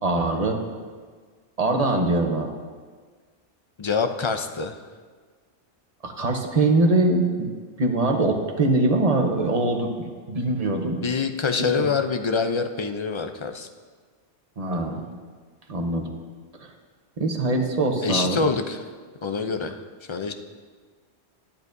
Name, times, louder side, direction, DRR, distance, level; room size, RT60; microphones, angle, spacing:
voice 1, 0.0-0.6 1.6-2.5 6.0-7.5 7.8-9.9 10.3-11.0 11.8-11.9 14.6-15.1 15.7-16.1 16.6-16.7 17.2-18.4, right 2 dB, 35° right, 2 dB, 1.1 m, -22 dB
voice 2, 3.8-4.8 11.0-13.7 18.0-18.8 19.2-19.8 20.1-20.3, left 5 dB, 40° left, 7 dB, 0.4 m, -25 dB
14.5 x 11.0 x 2.6 m, 1.5 s
omnidirectional pair, 1.2 m